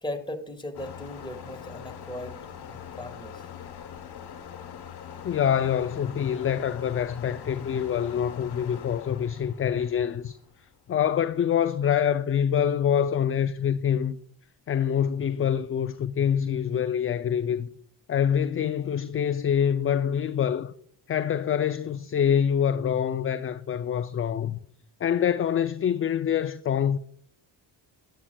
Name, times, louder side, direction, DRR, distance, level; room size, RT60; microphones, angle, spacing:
voice 1, 0.0-2.4 2.7-3.5, left 1 dB, 10° left, 1.6 m, -37 dB
sound 1, 0.7-10.9, left 8 dB, 55° left, 1.1 m, -43 dB
voice 2, 5.2-10.4 10.9-14.2 14.7-17.7 18.1-20.7 21.1-24.6 25.0-27.0, left 8 dB, 30° left, 0.3 m, -25 dB
12.0 x 10.0 x 2.3 m
supercardioid pair, 55°, 48 cm